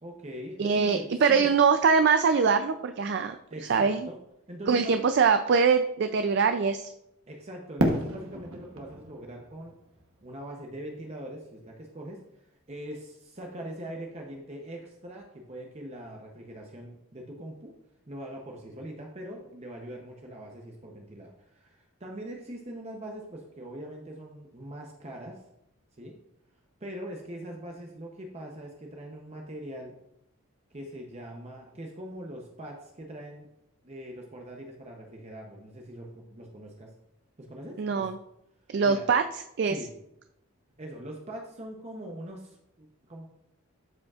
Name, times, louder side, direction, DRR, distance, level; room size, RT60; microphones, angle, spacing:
voice 1, 0.0-1.5 3.5-4.2 4.5-5.0 7.3-9.7 10.2-12.2 12.7-17.7 18.1-25.4 26.0-26.1 26.8-30.0 30.7-33.5 33.8-36.9 37.4-38.1 38.8-39.0 39.7-39.9 40.8-43.3, right 1 dB, 30° right, 0 dB, 0.7 m, -42 dB
voice 2, 0.6-3.4 3.7-4.1 4.7-6.9 37.8-38.2 38.7-39.2 39.6-39.8, right 5 dB, 50° right, 8 dB, 0.3 m, -23 dB
Fireworks, 7.8-10.8, right 1 dB, 85° right, 1.1 m, -31 dB
12.0 x 5.1 x 2.4 m, 0.83 s
head